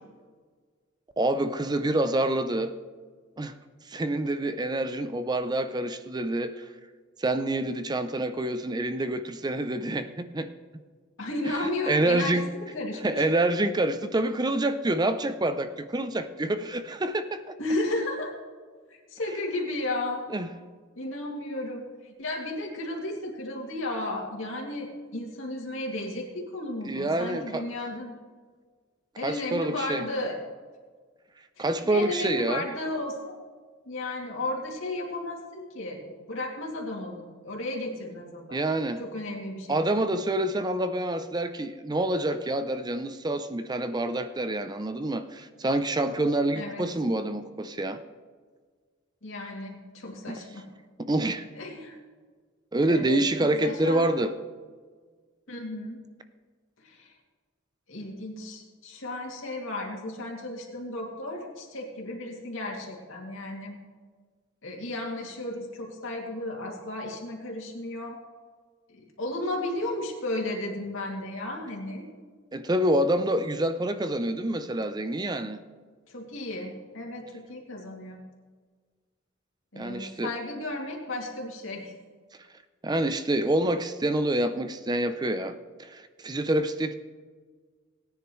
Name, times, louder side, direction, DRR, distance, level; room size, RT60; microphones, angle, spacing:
voice 1, 1.2-2.7 3.4-3.6 3.9-6.7 7.2-10.5 11.9-12.5 13.0-17.5 20.3-20.5 26.8-27.6 29.2-30.1 31.6-32.7 38.5-39.0 39.7-48.0 50.3-50.4 51.1-51.5 52.7-54.3 72.5-75.6 79.8-80.3 82.8-86.9, right 1 dB, 20° right, 10 dB, 0.5 m, -27 dB
voice 2, 11.2-13.2 17.6-18.3 18.9-20.2 21.0-28.2 29.2-30.4 31.6-33.4 33.8-38.6 39.0-40.1 46.5-46.8 49.2-50.6 51.5-52.0 52.9-54.2 55.5-56.0 56.8-57.1 57.9-63.8 64.6-68.2 68.9-72.0 76.1-78.2 79.7-81.9, left 1 dB, 75° left, 0 dB, 2.5 m, -34 dB
18.0 x 9.9 x 3.1 m, 1.5 s
head